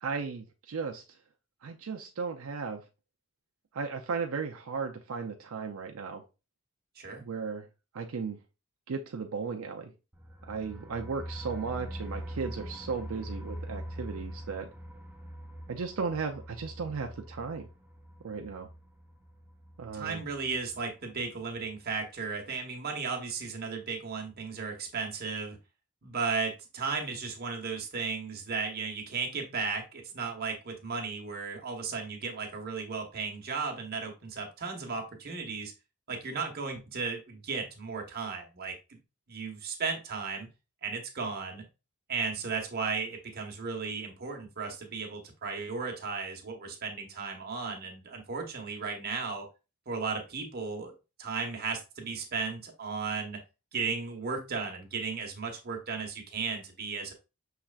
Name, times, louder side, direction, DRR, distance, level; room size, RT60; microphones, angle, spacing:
voice 1, 0.0-1.0 1.6-2.8 3.7-6.2 7.2-7.6 7.9-8.4 8.9-9.9 10.5-14.7 15.7-17.7 18.2-18.7 19.8-20.2, right 5 dB, 85° right, 3 dB, 0.5 m, -35 dB
voice 2, 7.0-7.3 19.9-25.6 26.0-35.7 36.1-38.7 39.3-40.5 40.8-41.6 42.1-49.5 49.9-50.9 51.2-53.4 53.7-57.1, right 5 dB, 50° right, 2 dB, 1.1 m, -35 dB
sound 1, 10.1-20.8 21.1-21.2 21.6-21.7, equal, 10° right, 0.4 m, -43 dB
5.8 x 3.2 x 2.4 m, 0.29 s
head